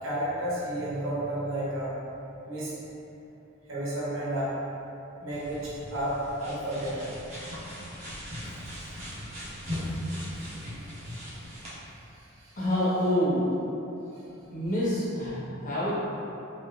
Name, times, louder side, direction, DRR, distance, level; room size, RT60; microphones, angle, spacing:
voice 1, 0.0-1.9 2.4-2.7 3.7-4.5 5.2-6.2 6.4-7.1 8.5-8.6 8.9-9.4 9.6-10.3 10.8-11.1 12.4-12.5, right 1 dB, 75° right, -8 dB, 0.9 m, -33 dB
sound 1, 5.3-11.7, equal, 35° right, 0.7 m, -38 dB
voice 2, 12.6-13.5 14.5-15.9, equal, 40° left, -10 dB, 0.9 m, -27 dB
3.1 x 2.4 x 3.1 m, 2.9 s
head